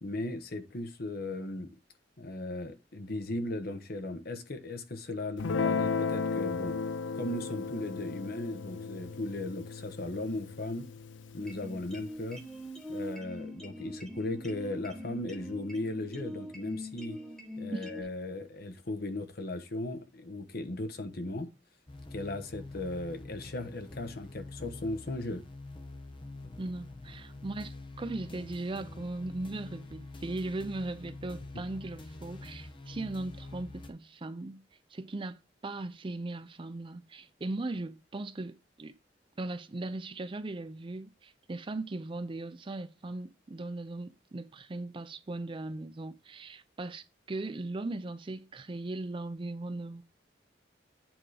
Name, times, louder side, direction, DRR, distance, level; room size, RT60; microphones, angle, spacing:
voice 1, 0.0-1.7 2.2-6.8 7.1-10.9 11.3-12.4 12.9-17.2 17.6-21.5 22.1-25.4, left 2 dB, 55° left, 1.0 m, -37 dB
Guitar, 5.4-12.0, left 5 dB, 85° left, 0.4 m, -35 dB
sound 1, 11.4-18.0, left 1 dB, 5° left, 1.2 m, -43 dB
sound 2, 21.9-33.9, left 2 dB, 25° left, 0.9 m, -46 dB
voice 2, 26.6-34.6 34.9-38.9 39.4-50.0, right 2 dB, 30° right, 0.4 m, -38 dB
8.9 x 3.7 x 4.8 m
head